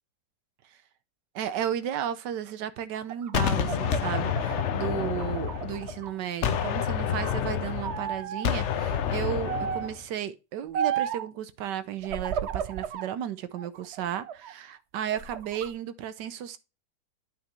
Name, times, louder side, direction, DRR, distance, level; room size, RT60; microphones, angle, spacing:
voice 1, 1.3-16.6, right 10 dB, 75° right, 1.4 m, -34 dB
sound 1, 2.9-6.2 6.5-7.4 7.8-8.5 9.5-10.0 10.7-11.3 12.0-13.1 13.6-14.5 15.0-15.7, right 9 dB, 90° right, 0.6 m, -34 dB
Gunshot gunfire, 3.3-6.1 6.4-10.0, left 8 dB, 60° left, 0.7 m, -28 dB
9.1 x 6.0 x 3.2 m
omnidirectional pair, 2.0 m